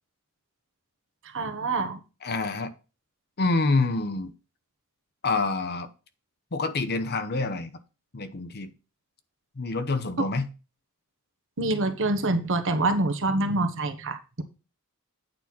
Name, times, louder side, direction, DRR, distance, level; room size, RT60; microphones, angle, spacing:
voice 1, 1.3-2.0 11.6-14.4, right 2 dB, 60° right, 1.2 m, -26 dB
voice 2, 2.2-2.7 3.4-4.3 5.2-5.9 6.5-7.7 8.1-8.7 9.6-10.5, left 3 dB, 50° left, 0.9 m, -27 dB
9.0 x 4.2 x 5.9 m
head